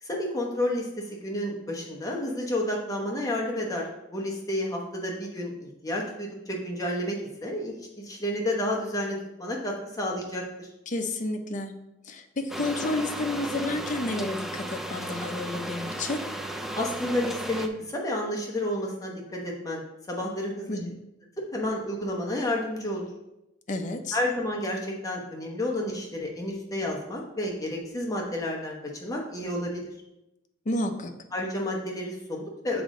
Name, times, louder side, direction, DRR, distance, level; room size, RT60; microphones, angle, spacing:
voice 1, 0.0-10.7 16.7-19.8 20.1-20.8 21.4-23.1 24.1-29.8 31.3-32.8, left 1 dB, 20° left, -1 dB, 0.9 m, -31 dB
voice 2, 10.9-11.7 12.0-16.2 20.7-21.0 23.7-24.2 30.7-31.1, left 2 dB, 40° left, 6 dB, 0.7 m, -31 dB
sound 1, 12.5-17.7, right 1 dB, ahead, 0.4 m, -35 dB
7.1 x 5.0 x 3.7 m, 0.91 s
head